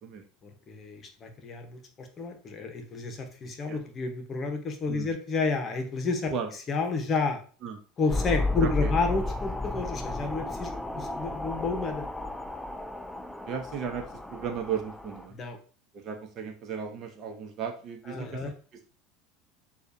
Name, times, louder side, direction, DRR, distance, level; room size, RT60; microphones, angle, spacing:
voice 1, 0.4-6.3 6.7-7.4 8.0-12.1 15.3-15.6 18.1-18.5, left 4 dB, 35° left, 5 dB, 0.9 m, -31 dB
sound 1, 8.1-15.3, left 2 dB, 5° left, 0.3 m, -33 dB
voice 2, 8.6-8.9 13.5-14.0 14.3-15.4 15.9-18.4, right 7 dB, 45° right, 5 dB, 0.8 m, -35 dB
6.6 x 2.4 x 2.7 m, 0.40 s
supercardioid pair, 100°, 0 cm